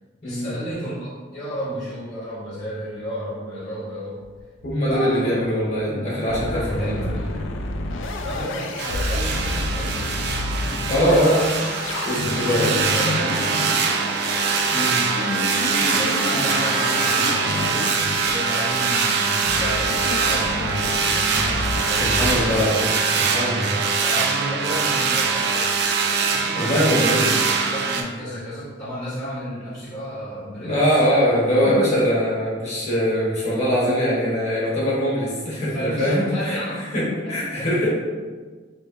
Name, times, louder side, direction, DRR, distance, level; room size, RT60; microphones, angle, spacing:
voice 1, 0.2-4.2 4.8-5.4 5.8-7.5 8.2-10.1 12.5-13.9 15.9-18.0 18.2-22.4 24.0-25.5 26.3-31.0 31.6-32.1 35.7-37.7, equal, 20° left, -13 dB, 0.8 m, -32 dB
sound 1, 4.2-5.1 5.4-5.5 5.8-5.9 6.3-22.7, left 2 dB, 80° left, 0.4 m, -29 dB
voice 2, 4.6-7.0 10.9-11.4 12.0-12.9 14.7-15.0 22.1-23.8 26.5-27.3 30.6-36.6 36.9-37.0 37.3-37.9, equal, 40° left, -7 dB, 1.3 m, -22 dB
sound 2, 8.8-28.0, right 5 dB, 60° right, 0.4 m, -23 dB
3.2 x 2.9 x 3.0 m, 1.4 s
head